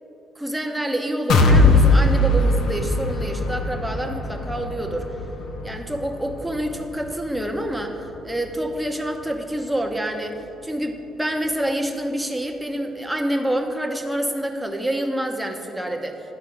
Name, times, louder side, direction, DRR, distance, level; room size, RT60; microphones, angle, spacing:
voice 1, 0.4-5.0 5.6-10.4 10.6-16.2, right 1 dB, 5° right, 3 dB, 0.8 m, -27 dB
sound 1, 1.3-9.1 9.5-9.6 10.0-10.1, left 2 dB, 80° left, 0.7 m, -21 dB
10.5 x 4.2 x 4.9 m, 2.9 s
cardioid pair, 95°, 0 cm